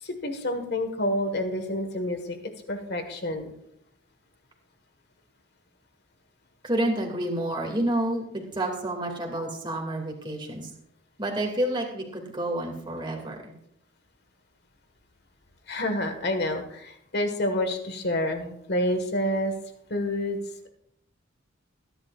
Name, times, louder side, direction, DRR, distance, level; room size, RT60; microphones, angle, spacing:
voice 1, 0.0-2.4 2.7-3.5 15.7-19.5 19.9-20.4, left 1 dB, 55° left, 6 dB, 1.6 m, -28 dB
voice 2, 6.6-10.7 11.2-13.5, right 1 dB, 25° right, 1 dB, 2.3 m, -29 dB
22.0 x 10.5 x 2.5 m, 0.75 s
head